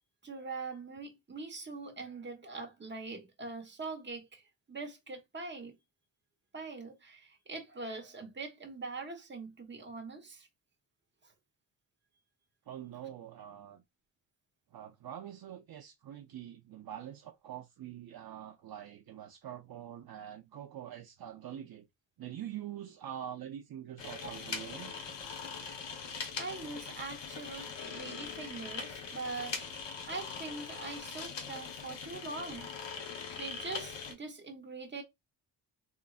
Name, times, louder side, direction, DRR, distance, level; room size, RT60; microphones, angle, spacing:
voice 1, 0.2-4.4 4.7-5.8 6.5-10.5 24.2-24.4 26.4-29.8 30.1-32.7 33.4-35.0, right 3 dB, 25° right, 1.1 m, -43 dB
voice 2, 12.7-13.8 14.7-21.9 22.2-25.1, right 10 dB, 60° right, 0.6 m, -45 dB
sound 1, 24.0-34.1, left 5 dB, 80° left, 1.1 m, -42 dB
4.0 x 3.1 x 2.4 m
wide cardioid pair, 110°, 43 cm